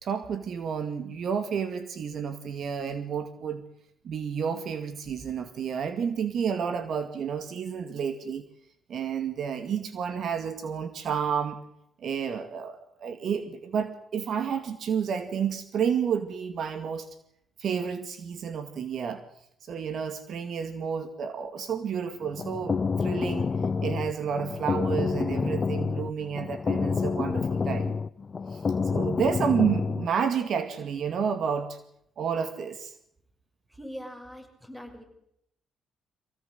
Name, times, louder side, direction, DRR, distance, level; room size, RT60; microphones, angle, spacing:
voice 1, 0.0-3.6 4.0-8.5 8.9-11.6 12.0-17.1 17.6-19.2 19.6-23.5 23.8-28.0 28.5-28.6 28.9-31.8 32.2-32.9, right 7 dB, 60° right, 10 dB, 2.2 m, -30 dB
sound 1, 22.2-30.1, left 5 dB, 40° left, 0.9 m, -28 dB
voice 2, 33.7-35.0, equal, 10° right, 6 dB, 6.5 m, -42 dB
24.0 x 17.0 x 8.1 m, 0.74 s
cardioid pair, 90°, 0 cm